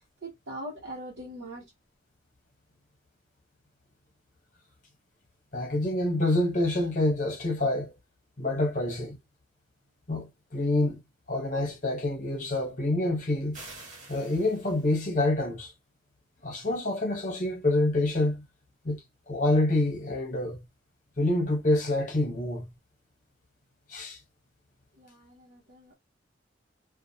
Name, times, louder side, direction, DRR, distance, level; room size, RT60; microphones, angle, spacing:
voice 1, 0.2-1.7 24.9-26.0, right 1 dB, 75° right, 1.1 m, -41 dB
voice 2, 5.5-7.9 8.4-9.2 10.1-11.0 11.3-13.6 14.1-15.7 16.4-18.4 18.8-19.0 19.3-20.6 21.2-22.7 23.9-24.2, left 2 dB, 45° left, 1.0 m, -27 dB
sound 1, 13.5-15.1, right 2 dB, 45° right, 1.2 m, -47 dB
2.5 x 2.4 x 2.7 m
head